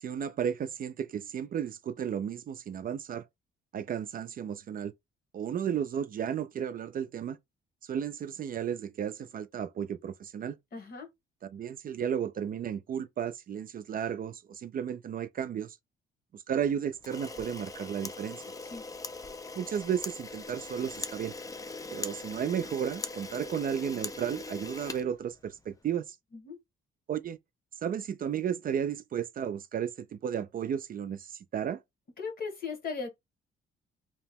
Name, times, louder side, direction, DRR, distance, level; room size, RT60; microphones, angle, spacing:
voice 1, 0.0-3.2 3.7-4.9 5.3-7.4 7.8-10.6 11.5-15.8 16.3-18.4 19.6-21.3 21.9-26.2 27.1-27.4 27.8-31.8, right 8 dB, 45° right, 0.4 m, -33 dB
voice 2, 10.7-11.1 18.6-18.8 26.3-26.6 32.2-33.1, left 5 dB, 50° left, 1.2 m, -37 dB
Camera, 17.0-25.7, left 3 dB, 15° left, 0.4 m, -41 dB
2.8 x 2.1 x 3.4 m
cardioid pair, 90°, 20 cm